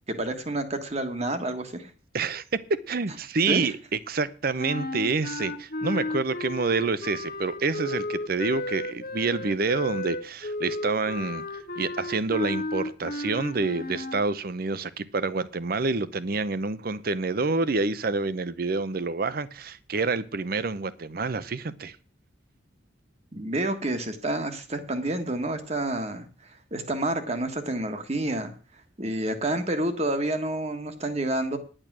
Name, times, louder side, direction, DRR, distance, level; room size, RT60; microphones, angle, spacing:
voice 1, 0.2-1.9 3.5-3.7 23.3-28.5 29.0-31.6, right 1 dB, 35° right, 1.4 m, -29 dB
voice 2, 2.7-3.7 4.1-11.4 11.8-22.0, right 3 dB, 50° right, 0.7 m, -28 dB
sound 1, 4.6-14.2, left 2 dB, 50° left, 1.5 m, -33 dB
10.5 x 9.0 x 6.1 m
head